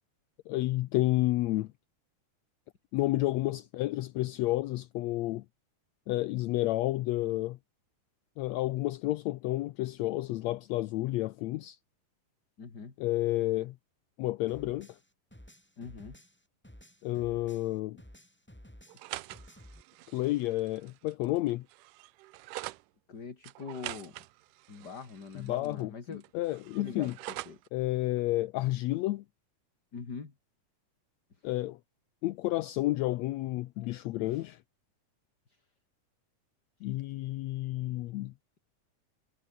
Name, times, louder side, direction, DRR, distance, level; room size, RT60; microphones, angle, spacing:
voice 1, 0.5-1.7 2.9-5.4 6.1-7.6 8.4-11.8 13.0-13.7 14.2-14.9 17.0-18.0 20.1-21.6 25.3-27.1 27.7-29.2 31.4-31.8 32.2-34.6 36.8-38.3, left 17 dB, 80° left, 1.6 m, -30 dB
voice 2, 12.6-12.9 15.8-16.2 23.1-24.1 24.7-26.2 26.8-27.6 29.9-30.3 34.3-34.5, left 5 dB, 30° left, 3.0 m, -43 dB
sound 1, 14.5-17.7 18.0-19.8, equal, 5° left, 3.1 m, -53 dB
sound 2, 18.9-22.8 23.4-25.8 26.1-27.7, right 18 dB, 85° right, 2.2 m, -45 dB
omnidirectional pair, 3.8 m